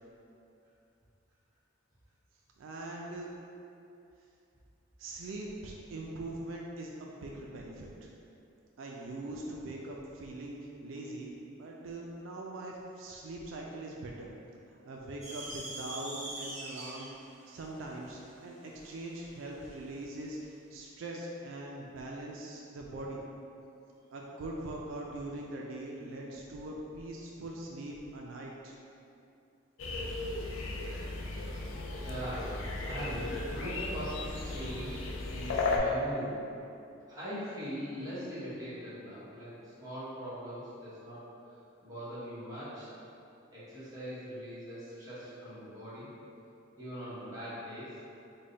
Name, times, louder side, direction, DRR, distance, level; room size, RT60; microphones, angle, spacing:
voice 1, 2.6-3.3 5.0-8.1 8.8-14.3 14.7-23.2 24.1-28.7, right 2 dB, 75° right, -2 dB, 0.3 m, -42 dB
sound 1, 15.2-19.7, right 1 dB, 35° right, 0.7 m, -43 dB
sound 2, 29.8-35.8, left 3 dB, 75° left, 0.4 m, -36 dB
voice 2, 32.0-36.4 37.1-41.6 41.8-42.9 43.5-46.1 46.8-48.0, equal, 20° right, -11 dB, 1.0 m, -41 dB
3.4 x 2.2 x 3.8 m, 2.7 s
head